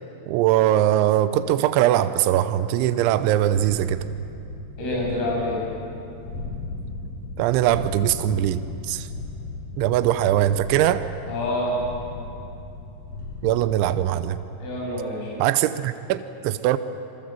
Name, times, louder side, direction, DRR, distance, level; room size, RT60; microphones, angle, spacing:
voice 1, 0.3-4.0 7.4-8.6 8.9-9.1 9.8-11.0 13.4-14.4 15.4-16.8, right 12 dB, 80° right, 11 dB, 3.0 m, -21 dB
sound 1, 3.5-14.2, left 3 dB, 40° left, 6.5 m, -36 dB
voice 2, 4.8-5.6 11.3-11.8 14.6-15.4, left 1 dB, 80° left, -3 dB, 9.9 m, -27 dB
27.5 x 23.5 x 7.6 m, 2.7 s
omnidirectional pair, 5.7 m